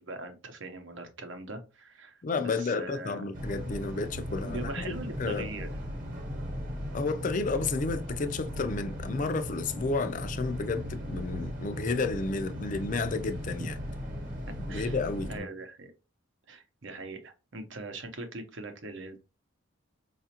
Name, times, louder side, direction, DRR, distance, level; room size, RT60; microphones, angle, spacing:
voice 1, 0.0-3.2 4.4-5.7 13.6-13.7 14.7-15.0 15.3-15.9 16.5-19.2, right 2 dB, 60° right, 0.7 m, -41 dB
voice 2, 2.2-5.5 6.9-13.7 14.7-15.5, left 3 dB, 35° left, 0.4 m, -31 dB
sound 1, 3.3-15.4, equal, 40° right, 1.0 m, -37 dB
5.0 x 2.4 x 2.8 m
head